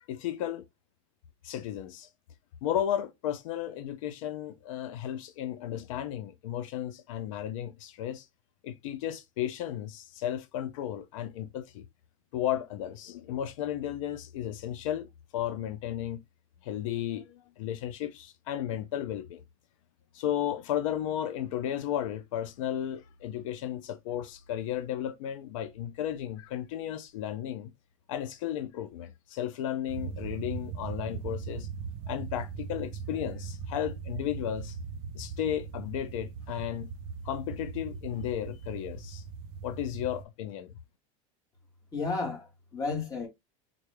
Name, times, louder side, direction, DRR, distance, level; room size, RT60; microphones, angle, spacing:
voice 1, 0.1-0.6 1.4-2.1 2.6-8.3 8.6-11.8 12.3-15.1 15.3-16.2 16.6-19.4 20.1-27.7 28.1-31.7 32.1-34.8 35.1-36.9 37.2-39.2 39.6-40.7, left 10 dB, 80° left, 0.5 m, -34 dB
sound 1, 29.9-40.2, right 5 dB, 50° right, 0.4 m, -39 dB
voice 2, 41.9-43.3, left 4 dB, 20° left, 1.2 m, -32 dB
3.8 x 2.2 x 3.1 m
supercardioid pair, 155°, 16 cm